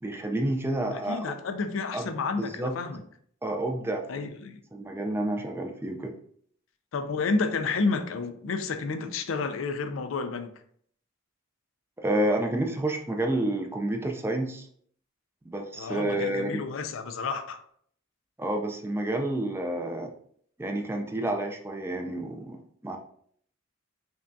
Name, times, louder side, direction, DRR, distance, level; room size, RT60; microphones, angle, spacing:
voice 1, 0.0-1.3 1.9-2.1 2.4-2.7 3.4-4.3 4.7-6.1 12.0-14.7 15.5-16.6 18.4-20.1 20.6-23.0, right 1 dB, 10° right, 3 dB, 0.4 m, -29 dB
voice 2, 0.9-3.0 4.1-4.6 6.9-10.5 15.7-17.6, left 4 dB, 70° left, 8 dB, 0.4 m, -30 dB
5.2 x 2.3 x 2.6 m, 0.62 s
head